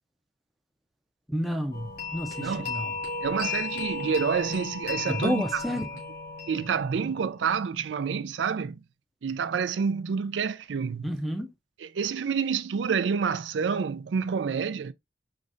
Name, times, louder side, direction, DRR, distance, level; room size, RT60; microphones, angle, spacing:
voice 1, 1.3-2.9 5.1-5.9 11.0-11.5, equal, ahead, 0.6 m, -30 dB
sound 1, 1.7-7.4, left 4 dB, 50° left, 2.0 m, -35 dB
voice 2, 3.2-5.8 6.5-8.8 9.2-11.1 11.8-14.9, right 6 dB, 85° right, 0.4 m, -28 dB
4.9 x 3.2 x 2.6 m
head